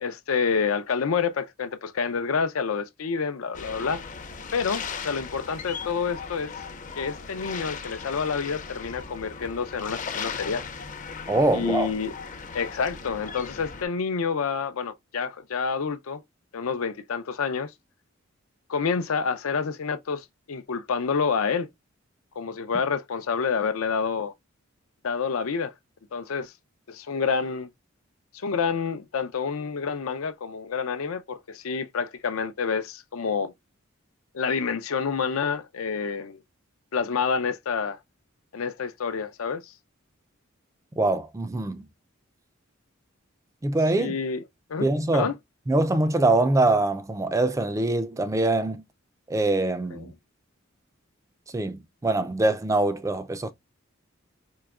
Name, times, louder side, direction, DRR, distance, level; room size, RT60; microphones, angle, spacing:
voice 1, 0.0-4.0 4.5-6.5 7.0-10.6 11.5-12.1 12.5-16.2 16.5-17.7 18.7-21.7 22.4-24.3 25.0-25.7 26.1-26.5 26.9-27.7 28.3-33.5 34.3-36.4 36.9-38.0 38.5-39.7 44.0-44.4 44.7-44.9 45.1-45.3 49.9-50.1, left 5 dB, 90° left, 0.5 m, -28 dB
sound 1, 3.5-13.9, left 5 dB, 40° left, 0.5 m, -37 dB
voice 2, 11.3-11.9 41.0-41.8 43.6-44.2 44.8-45.3 45.7-48.8 49.3-50.1 51.5-53.5, right 2 dB, 15° right, 0.3 m, -23 dB
4.6 x 3.0 x 2.3 m
head